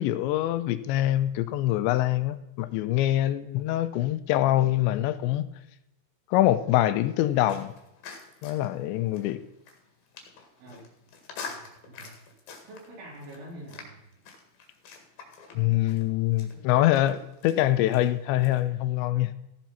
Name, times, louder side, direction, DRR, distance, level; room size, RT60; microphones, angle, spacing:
voice 1, 0.0-5.5 6.3-7.7 8.4-9.4 15.6-19.3, left 14 dB, 85° left, 2.9 m, -24 dB
sound 1, 7.0-18.6, left 5 dB, 60° left, 3.5 m, -47 dB
voice 2, 11.5-12.1 12.7-14.0 16.5-16.6, right 1 dB, 80° right, 6.3 m, -45 dB
14.5 x 7.5 x 5.7 m
omnidirectional pair, 5.3 m